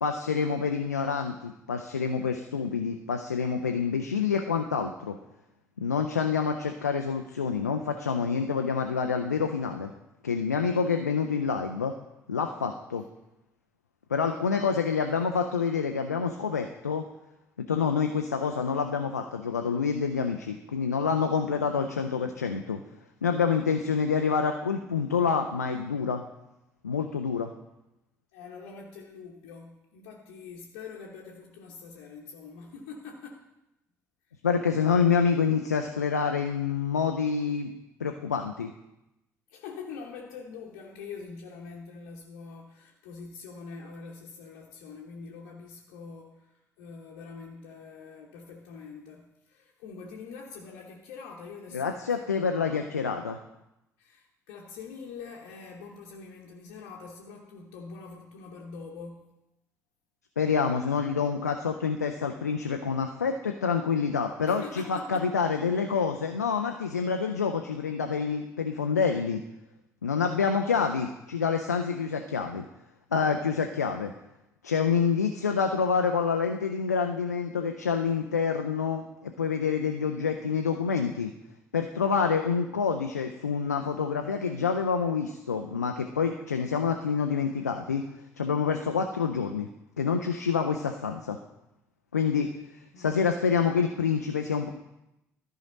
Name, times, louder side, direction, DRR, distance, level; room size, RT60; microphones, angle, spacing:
voice 1, 0.0-5.2 5.8-9.9 10.2-11.9 12.3-13.0 14.1-17.0 17.7-22.8 23.2-26.2 26.8-27.5 34.4-37.7 38.0-38.7 51.7-53.4 60.4-69.4 70.0-72.6 73.1-74.1 74.6-81.3 81.7-88.0 88.4-89.7 90.0-91.4 92.1-92.5 93.0-94.7, left 6 dB, 85° left, 5 dB, 0.4 m, -27 dB
voice 2, 28.3-33.4 39.5-52.1 52.5-52.8 54.0-59.3 64.5-65.3 92.9-93.2, left 5 dB, 65° left, -2 dB, 0.9 m, -44 dB
13.5 x 5.0 x 3.9 m, 0.89 s
figure-of-eight pair, 45°, 9 cm